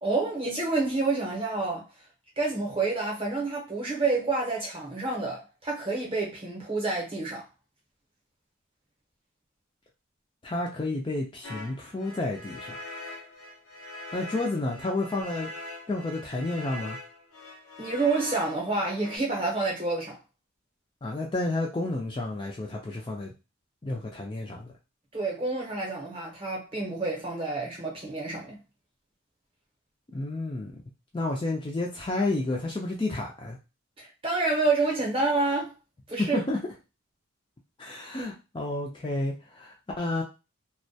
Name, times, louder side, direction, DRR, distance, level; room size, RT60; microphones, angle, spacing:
voice 1, 0.0-1.9 2.4-7.5 17.8-20.2 25.1-28.6 34.0-35.7 36.1-36.4, right 3 dB, 25° right, 0.7 m, -28 dB
voice 2, 10.4-12.7 14.1-15.5 15.9-17.0 21.0-23.3 23.8-24.7 30.1-30.8 31.1-33.6 36.2-36.6 37.8-40.2, left 2 dB, 25° left, 0.3 m, -31 dB
sound 1, 11.4-19.2, left 2 dB, 90° left, 0.7 m, -42 dB
2.2 x 2.1 x 2.6 m
head